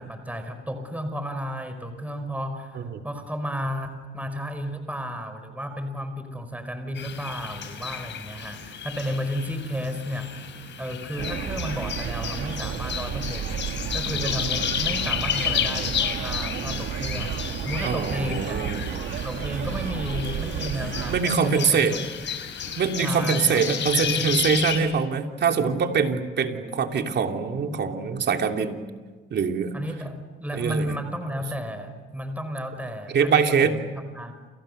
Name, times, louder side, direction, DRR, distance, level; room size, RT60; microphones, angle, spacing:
voice 1, 0.0-10.5 10.8-13.6 13.9-18.6 19.2-21.8 23.0-24.3 29.7-33.8 34.1-34.4, equal, 5° right, 7 dB, 5.1 m, -33 dB
sound 1, 6.9-24.8, left 8 dB, 65° left, 5.5 m, -32 dB
sound 2, 11.2-21.2, right 9 dB, 80° right, 2.0 m, -32 dB
voice 2, 17.8-18.9 21.1-22.0 22.8-28.8 29.3-29.7 30.5-31.0 33.1-33.8, right 6 dB, 60° right, 5 dB, 3.0 m, -24 dB
29.5 x 29.5 x 6.8 m, 1.4 s
cardioid pair, 90°, 20 cm